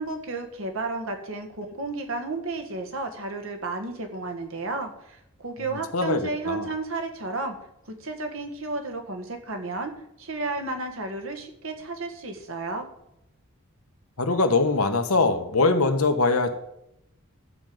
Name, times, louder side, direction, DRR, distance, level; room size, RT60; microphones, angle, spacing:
voice 1, 0.0-7.5 8.0-9.9 10.2-12.9, right 3 dB, 65° right, 5 dB, 1.7 m, -32 dB
voice 2, 14.2-16.5, left 3 dB, 80° left, 6 dB, 1.4 m, -22 dB
12.5 x 5.3 x 7.8 m, 0.81 s
head